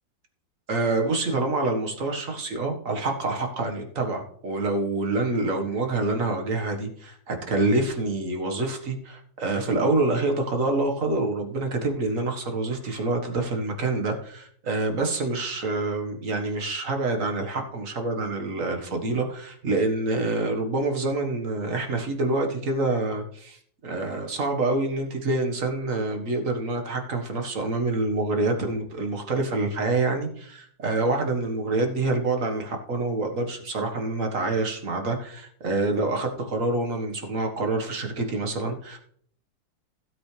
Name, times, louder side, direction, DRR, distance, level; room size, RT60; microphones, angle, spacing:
voice 1, 0.7-39.0, right 2 dB, 45° right, 3 dB, 1.9 m, -26 dB
16.0 x 8.1 x 3.4 m, 0.63 s
omnidirectional pair, 2.0 m